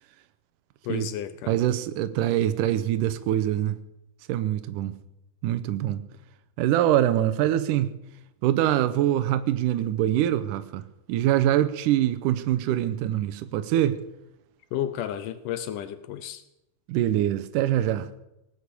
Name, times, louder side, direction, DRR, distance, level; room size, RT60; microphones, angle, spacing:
voice 1, 0.8-1.6 14.7-16.4, left 11 dB, 80° left, 12 dB, 2.3 m, -32 dB
voice 2, 1.5-3.8 4.3-5.0 5.4-6.0 6.6-7.9 8.4-14.0 16.9-18.1, right 12 dB, 85° right, 11 dB, 2.3 m, -24 dB
19.0 x 8.3 x 8.3 m, 0.89 s
omnidirectional pair, 3.7 m